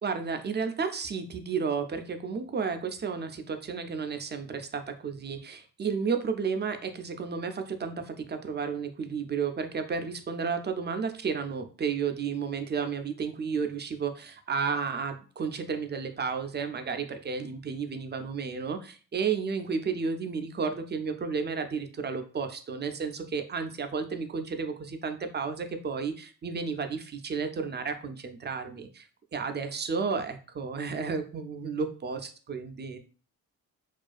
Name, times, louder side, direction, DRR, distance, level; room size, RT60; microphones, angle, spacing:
voice 1, 0.0-33.0, right 5 dB, 30° right, 7 dB, 0.4 m, -32 dB
2.4 x 2.2 x 2.4 m, 0.38 s
supercardioid pair, 50°, 35 cm